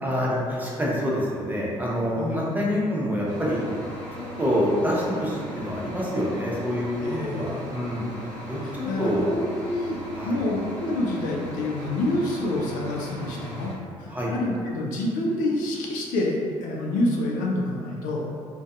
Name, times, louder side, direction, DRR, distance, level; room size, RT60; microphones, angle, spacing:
voice 1, 0.0-3.6 4.2-8.1 8.5-9.3 10.1-10.4 14.1-14.3, equal, 10° right, -6 dB, 0.8 m, -26 dB
voice 2, 2.1-2.6 7.0-7.7 8.6-10.0 10.2-13.7 14.0-18.2, left 1 dB, 75° left, -2 dB, 0.4 m, -27 dB
sound 1, 3.2-13.7, equal, 60° right, 0.7 m, -38 dB
2.5 x 2.2 x 2.4 m, 2.2 s
hypercardioid pair, 50°, 14 cm